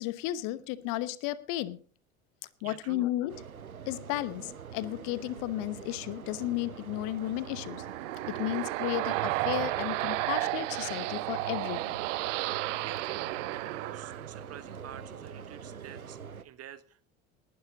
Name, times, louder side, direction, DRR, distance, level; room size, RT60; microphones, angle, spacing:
voice 1, 0.0-1.8 2.6-3.4 3.9-7.8 8.3-12.0, left 16 dB, 50° left, 17 dB, 1.0 m, -34 dB
voice 2, 2.6-3.1 12.8-17.1, right 11 dB, 35° right, 14 dB, 1.3 m, -48 dB
sound 1, 3.3-16.4, right 7 dB, 90° right, 0.7 m, -44 dB
sound 2, 7.2-14.7, right 18 dB, 60° right, 0.8 m, -33 dB
19.5 x 12.0 x 3.6 m, 0.40 s
figure-of-eight pair, 65°, 41 cm